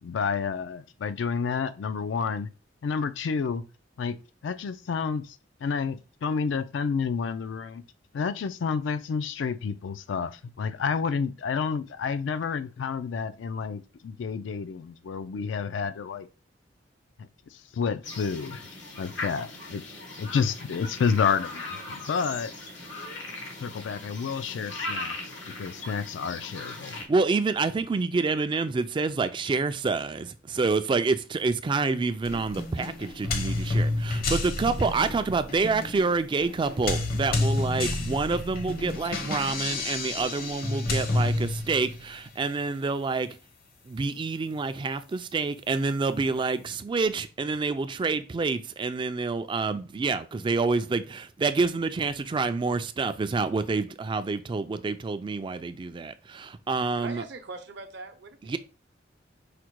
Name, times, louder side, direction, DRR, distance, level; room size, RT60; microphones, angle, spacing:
voice 1, 0.0-2.5 2.8-3.6 4.0-4.2 4.4-7.8 8.1-16.3 17.2-18.6 18.9-19.8 20.2-22.5 23.6-27.0, left 6 dB, 75° left, 0.4 m, -30 dB
sound 1, 18.0-27.1, left 2 dB, 90° left, 1.2 m, -39 dB
voice 2, 27.1-43.3 43.9-57.2 58.5-58.6, right 4 dB, 25° right, 0.3 m, -27 dB
sound 2, 32.2-42.1, left 2 dB, 55° left, 0.7 m, -30 dB
voice 3, 56.9-58.6, right 3 dB, 65° right, 0.7 m, -41 dB
5.0 x 2.1 x 4.5 m
head